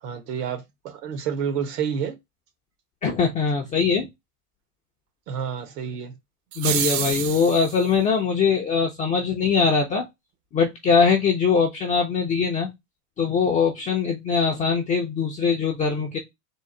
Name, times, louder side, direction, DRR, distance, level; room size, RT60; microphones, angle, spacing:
voice 1, 0.0-2.1 5.3-6.1, right 7 dB, 85° right, 1.5 m, -29 dB
voice 2, 3.0-4.1 6.6-10.1 10.5-12.7 13.2-16.2, left 5 dB, 20° left, 0.3 m, -22 dB
sound 1, 6.5-7.8, right 11 dB, 50° right, 0.6 m, -28 dB
3.7 x 2.5 x 4.2 m
supercardioid pair, 145°, 47 cm